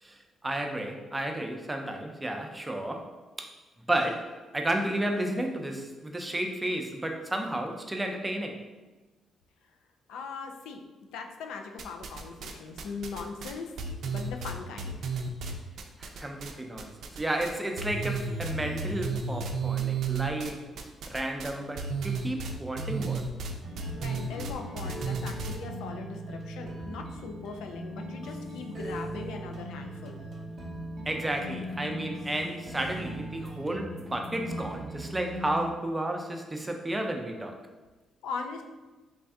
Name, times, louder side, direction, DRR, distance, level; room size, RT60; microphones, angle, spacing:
voice 1, 0.0-3.5 3.9-8.6 16.0-20.6 21.1-23.2 31.1-37.6, right 1 dB, 15° right, 3 dB, 0.5 m, -32 dB
voice 2, 10.1-10.8 11.1-13.7 14.1-15.0 23.9-30.2 38.2-38.6, left 5 dB, 90° left, 4 dB, 0.4 m, -40 dB
sound 1, 11.8-12.5 12.8-16.5 16.8-17.5 17.8-25.6, right 4 dB, 70° right, 0.4 m, -33 dB
sound 2, 23.6-35.7, right 1 dB, 50° right, 0.8 m, -39 dB
3.3 x 2.6 x 3.4 m, 1.2 s
cardioid pair, 90°, 0 cm